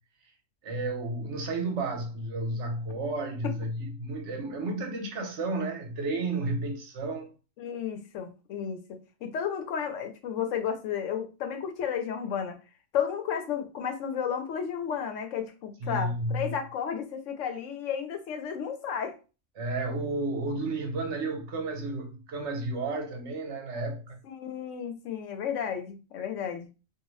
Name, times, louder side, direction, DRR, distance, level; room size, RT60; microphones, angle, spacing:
voice 1, 0.6-7.3 15.8-16.5 19.6-24.2, right 2 dB, 70° right, 1.0 m, -32 dB
voice 2, 7.6-12.6 12.9-19.2 24.2-26.7, left 8 dB, 80° left, 1.0 m, -33 dB
2.7 x 2.5 x 3.0 m
omnidirectional pair, 1.3 m